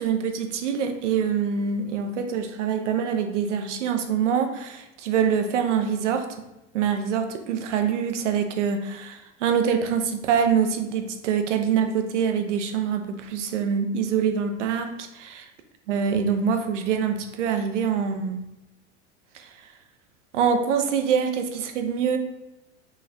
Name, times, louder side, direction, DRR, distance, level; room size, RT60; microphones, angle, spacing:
voice 1, 0.0-6.3 6.7-15.5 15.9-18.4 19.3-19.5 20.3-22.2, right 7 dB, 85° right, 6 dB, 0.5 m, -25 dB
3.1 x 2.1 x 3.6 m, 0.93 s
hypercardioid pair, 90°, 35 cm